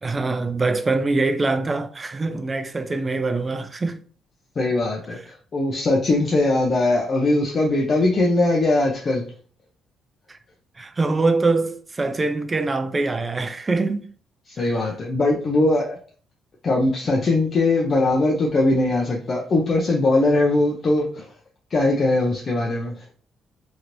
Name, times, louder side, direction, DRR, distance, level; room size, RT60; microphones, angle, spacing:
voice 1, 0.0-4.0 10.3-10.4 10.8-14.1 14.6-14.8, right 3 dB, 25° right, 0.4 m, -24 dB
voice 2, 4.6-9.3 14.5-16.0 16.6-21.2 21.7-23.0, left 2 dB, 45° left, 0.6 m, -20 dB
3.0 x 2.9 x 2.6 m
cardioid pair, 90°, 0 cm